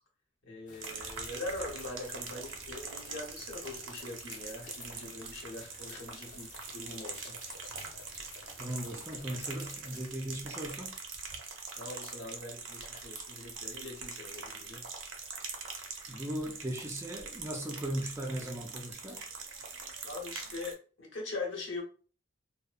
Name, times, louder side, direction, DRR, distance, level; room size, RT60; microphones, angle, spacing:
voice 1, 0.4-7.4 11.7-14.9 20.0-21.8, left 2 dB, 75° left, 0.9 m, -42 dB
sound 1, 0.7-10.1, left 3 dB, 40° left, 0.5 m, -52 dB
sound 2, 0.8-20.7, right 5 dB, 85° right, 0.6 m, -43 dB
voice 2, 8.6-11.0 16.1-19.3, right 1 dB, 15° right, 0.3 m, -38 dB
2.6 x 2.1 x 2.4 m
head